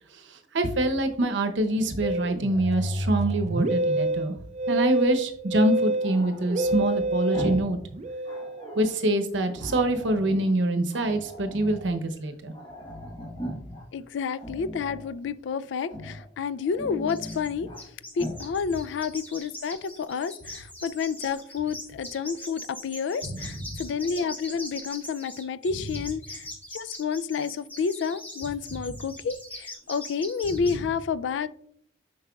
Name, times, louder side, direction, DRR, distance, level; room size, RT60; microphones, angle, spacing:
voice 1, 0.5-4.3 4.7-7.8 8.8-12.5 23.2-23.6, right 1 dB, 80° right, 7 dB, 0.7 m, -25 dB
Growling, 1.6-3.7 6.0-7.8 8.1-9.0 9.6-10.5 10.9-11.9 12.2-12.3 12.5-13.8 14.3-15.1 15.8-16.3 16.6-17.8 18.1-18.5, equal, 25° left, 1.2 m, -40 dB
Musical instrument, 2.0-8.8, right 1 dB, 35° right, 0.3 m, -28 dB
voice 2, 13.9-17.7 18.2-26.4 26.7-31.5, left 6 dB, 80° left, 16 dB, 0.3 m, -30 dB
sound 1, 17.1-17.5 17.8-30.8, left 1 dB, 10° left, 1.1 m, -41 dB
7.5 x 5.4 x 2.3 m, 0.69 s
head